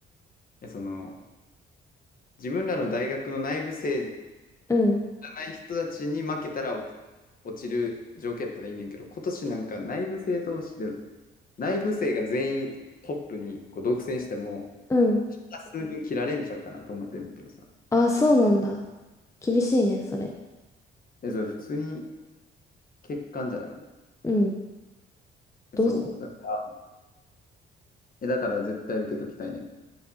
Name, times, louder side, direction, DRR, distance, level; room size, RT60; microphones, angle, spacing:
voice 1, 0.6-1.1 2.4-4.1 5.2-6.8 7.4-10.9 11.6-12.7 13.0-14.7 15.7-17.3 21.2-22.1 23.0-23.7 25.9-26.6 28.2-29.7, left 2 dB, 45° left, 2 dB, 1.2 m, -31 dB
voice 2, 4.7-5.0 14.9-15.2 17.9-18.8 19.4-20.3 24.2-24.6 25.8-25.9, left 2 dB, 15° left, 1 dB, 0.6 m, -22 dB
10.0 x 4.5 x 2.9 m, 1.1 s
cardioid pair, 90°, 20 cm